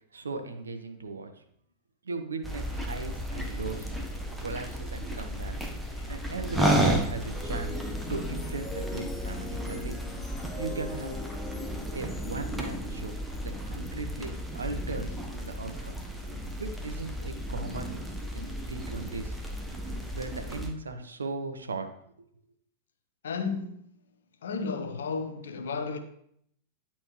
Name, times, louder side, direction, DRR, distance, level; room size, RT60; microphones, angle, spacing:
voice 1, 0.1-1.3 2.0-3.9 4.4-5.7 6.1-10.0 10.5-11.2 11.9-15.9 16.6-18.0 18.3-19.4 20.1-21.9, right 3 dB, 75° right, 1.0 m, -37 dB
sound 1, 2.4-20.7, equal, 5° right, 1.2 m, -33 dB
sound 2, 6.2-15.5, left 2 dB, 15° left, 0.9 m, -43 dB
voice 2, 23.2-23.9 24.4-26.0, left 5 dB, 65° left, 1.0 m, -33 dB
10.5 x 4.3 x 3.2 m
figure-of-eight pair, 90°, 0 cm